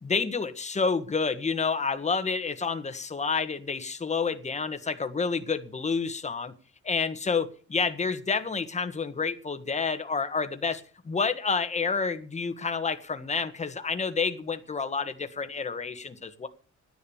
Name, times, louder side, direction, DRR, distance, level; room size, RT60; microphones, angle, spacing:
voice 1, 0.0-6.5 6.8-16.5, left 5 dB, 25° left, 1.5 m, -29 dB
13.0 x 10.5 x 7.1 m
cardioid pair, 120°, 29 cm